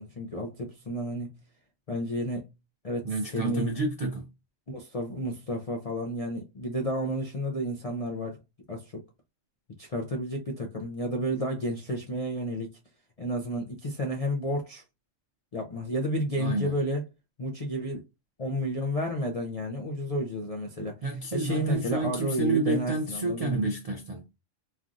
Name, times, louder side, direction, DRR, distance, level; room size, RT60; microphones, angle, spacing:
voice 1, 0.0-1.4 1.9-2.5 2.8-3.7 4.7-8.4 8.7-9.0 9.8-12.7 13.2-14.8 15.5-17.0 17.4-18.0 18.4-21.0 21.3-23.7, equal, 55° left, 0.4 m, -31 dB
voice 2, 3.0-4.3 16.4-16.7 21.0-24.3, right 3 dB, 60° right, 0.4 m, -29 dB
3.3 x 2.5 x 2.4 m
omnidirectional pair, 1.4 m